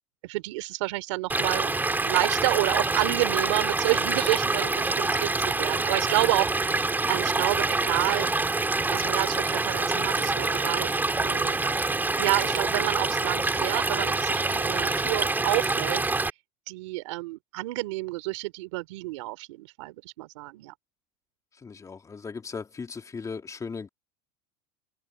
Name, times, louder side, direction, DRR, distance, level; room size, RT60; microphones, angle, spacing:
voice 1, 0.2-1.7 2.0-5.3 5.6-8.3 8.9-10.9 11.2-11.6 12.2-16.0 16.7-20.7, right 22 dB, 80° right, 3.6 m, -29 dB
Stream / Liquid, 1.3-16.3, right 3 dB, 10° right, 4.3 m, -26 dB
voice 2, 21.6-23.9, left 5 dB, 20° left, 3.5 m, -37 dB
supercardioid pair, 110°, 15 cm